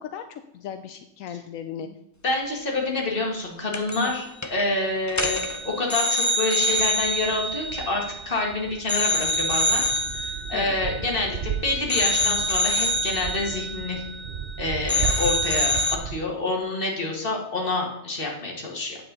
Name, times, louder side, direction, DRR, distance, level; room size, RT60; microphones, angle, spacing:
voice 1, 0.0-1.9 3.9-4.1 10.5-10.8, left 9 dB, 85° left, 8 dB, 1.0 m, -36 dB
voice 2, 2.2-14.0 14.6-15.7 16.0-19.0, left 2 dB, 45° left, 0 dB, 2.0 m, -27 dB
sound 1, 3.7-4.2 4.4-4.6 5.1-8.5 8.9-11.5 11.9-14.6 14.9-16.0, left 1 dB, 20° left, 0.6 m, -26 dB
sound 2, 6.7-16.2, right 8 dB, 60° right, 0.5 m, -35 dB
8.7 x 7.7 x 4.0 m, 0.85 s
omnidirectional pair, 1.4 m